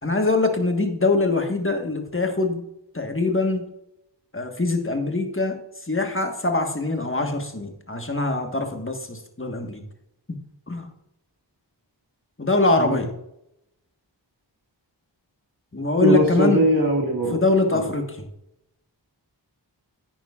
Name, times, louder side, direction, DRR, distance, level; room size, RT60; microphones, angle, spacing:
voice 1, 0.0-2.6 2.9-3.7 4.3-5.6 5.9-9.8 10.7-10.9 12.4-13.1 15.7-16.6 17.3-18.2, left 3 dB, 30° left, 5 dB, 1.5 m, -23 dB
voice 2, 16.0-17.4 17.7-17.9, right 1 dB, 50° right, -3 dB, 2.1 m, -21 dB
10.5 x 8.8 x 2.5 m, 0.82 s
wide cardioid pair, 45°, 44 cm